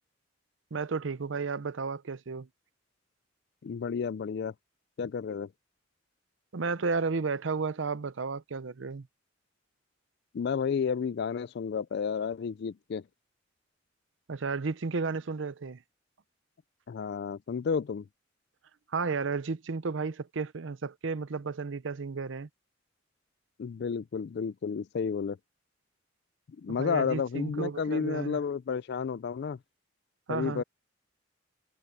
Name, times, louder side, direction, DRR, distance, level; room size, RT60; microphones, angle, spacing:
voice 1, 0.7-2.5 6.5-9.1 14.3-15.8 18.9-22.5 26.7-28.4 30.3-30.6, right 4 dB, 75° right, 0.7 m, -33 dB
voice 2, 3.6-4.5 5.0-5.5 10.3-13.0 16.9-18.0 23.6-25.4 26.6-29.6 30.3-30.6, left 6 dB, 60° left, 0.4 m, -31 dB
head